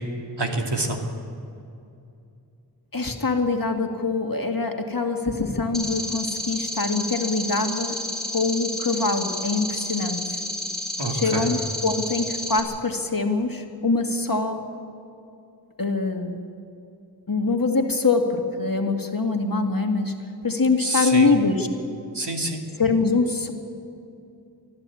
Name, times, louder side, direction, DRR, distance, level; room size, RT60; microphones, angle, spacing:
voice 1, 0.4-1.0 11.0-11.5 20.8-21.3 22.1-22.6, right 2 dB, 75° right, 1 dB, 2.7 m, -26 dB
voice 2, 2.9-8.0 8.3-10.2 11.1-14.7 15.8-16.4 17.3-20.2 20.4-21.7 22.8-23.5, left 3 dB, 55° left, 3 dB, 2.2 m, -24 dB
sound 1, 5.7-12.6, left 1 dB, ahead, 5.3 m, -31 dB
24.5 x 14.5 x 8.6 m, 2.6 s
wide cardioid pair, 45°, 42 cm